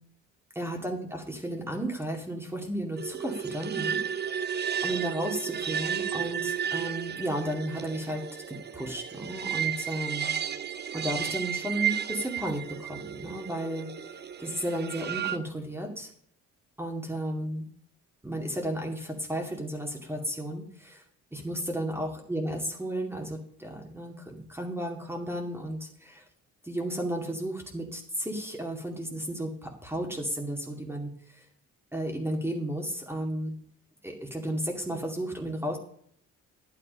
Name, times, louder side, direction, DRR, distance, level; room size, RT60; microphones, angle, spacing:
voice 1, 0.6-4.0 4.3-10.3 10.9-16.1 16.8-17.7 18.2-21.0 21.3-26.2 26.6-31.5 31.9-33.5 34.0-35.8, right 1 dB, 10° right, 1 dB, 2.3 m, -33 dB
sound 1, 3.0-15.4, right 8 dB, 35° right, 0.7 m, -33 dB
11.0 x 9.5 x 5.4 m, 0.63 s
cardioid pair, 90°, 30 cm